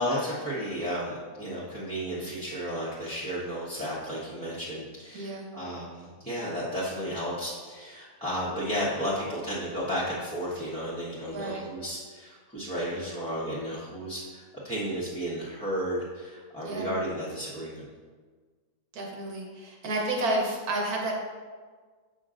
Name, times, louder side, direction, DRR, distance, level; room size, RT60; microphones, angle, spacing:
voice 1, 0.0-17.8, equal, 5° left, -11 dB, 1.1 m, -33 dB
voice 2, 5.1-5.5 11.3-11.6 16.6-16.9 18.9-21.1, right 2 dB, 85° right, -1 dB, 1.6 m, -30 dB
7.5 x 5.8 x 2.5 m, 1.5 s
omnidirectional pair, 1.5 m